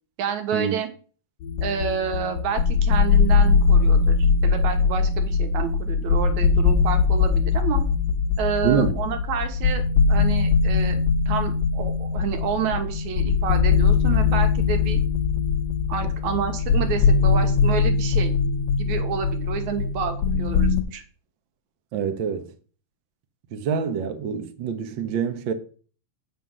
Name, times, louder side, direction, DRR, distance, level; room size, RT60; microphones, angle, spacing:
voice 1, 0.2-0.9 1.6-4.2 4.4-7.8 8.4-9.8 10.1-15.0 15.9-18.3 18.8-21.0, right 7 dB, 80° right, 2.6 m, -29 dB
sound 1, 1.4-20.8, left 5 dB, 75° left, 2.0 m, -21 dB
voice 2, 21.9-22.5 23.5-25.5, right 7 dB, 60° right, 1.3 m, -25 dB
7.5 x 5.6 x 6.2 m
omnidirectional pair, 3.3 m